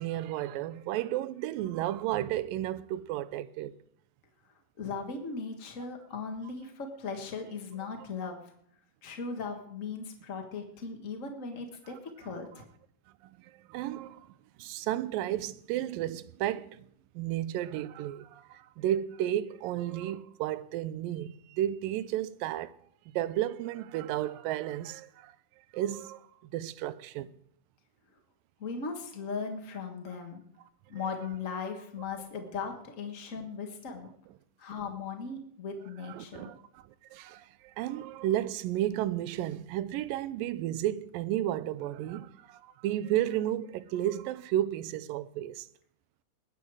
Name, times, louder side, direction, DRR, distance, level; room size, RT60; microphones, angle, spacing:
voice 1, 0.0-3.7 11.9-12.0 13.2-14.3 14.6-16.9 17.2-22.7 23.1-25.3 25.7-27.3 36.0-36.8 37.1-45.7, right 12 dB, 85° right, 2.4 m, -33 dB
voice 2, 4.8-8.4 9.0-12.6 28.6-30.4 30.9-34.1 34.6-36.5, left 5 dB, 65° left, 0.7 m, -38 dB
20.0 x 9.3 x 4.8 m
omnidirectional pair, 3.9 m